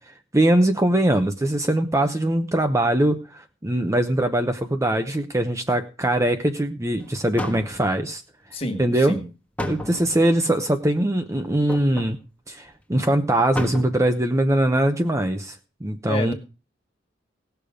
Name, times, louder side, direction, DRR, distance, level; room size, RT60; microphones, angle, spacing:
voice 1, 0.3-3.2 3.6-8.2 8.8-9.2 9.6-12.2 12.5-15.5 15.8-16.3, right 1 dB, 15° right, 6 dB, 0.8 m, -21 dB
sound 1, 7.0-7.1 7.4-8.1 9.6-10.2 11.7-12.1 12.7-12.8 13.0-13.1 13.5-14.1 14.5-14.6, left 1 dB, 10° left, 1.3 m, -32 dB
voice 2, 8.5-8.8 9.1-9.2 16.1-16.3, left 1 dB, 30° left, 6 dB, 1.9 m, -27 dB
17.5 x 6.9 x 5.1 m, 0.33 s
head